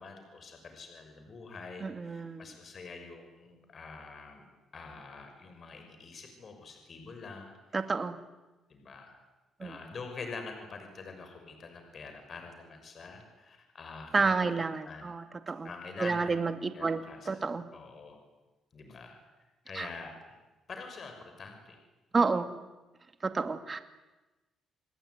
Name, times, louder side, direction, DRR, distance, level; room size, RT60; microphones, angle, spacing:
voice 1, 0.0-4.5 4.7-7.9 8.7-9.2 9.6-15.4 15.6-16.4 16.7-17.4 17.7-18.2 18.7-19.2 19.6-20.4 20.7-21.8, left 4 dB, 45° left, 5 dB, 6.3 m, -46 dB
voice 2, 1.8-2.5 7.7-8.2 9.6-9.7 14.1-15.7 16.0-17.0 17.3-17.6 19.7-19.9 22.1-22.5 23.2-23.8, right 4 dB, 30° right, 8 dB, 2.4 m, -30 dB
29.0 x 20.5 x 9.7 m, 1.1 s
cardioid pair, 90°, 0 cm